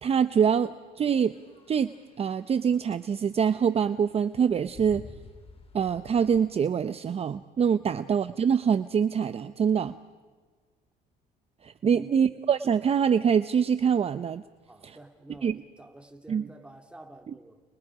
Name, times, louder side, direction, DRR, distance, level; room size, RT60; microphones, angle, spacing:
voice 1, 0.0-1.3 1.7-5.0 5.7-9.9 11.6-14.4 14.8-15.0 15.4-15.6 16.3-16.5 17.3-17.4, right 7 dB, 35° right, 0.8 m, -25 dB
sound 1, 1.2-6.5, left 3 dB, 35° left, 3.9 m, -51 dB
voice 2, 11.9-12.3 14.7-17.6, right 1 dB, 5° right, 3.2 m, -48 dB
29.5 x 29.5 x 4.9 m
cardioid pair, 110°, 17 cm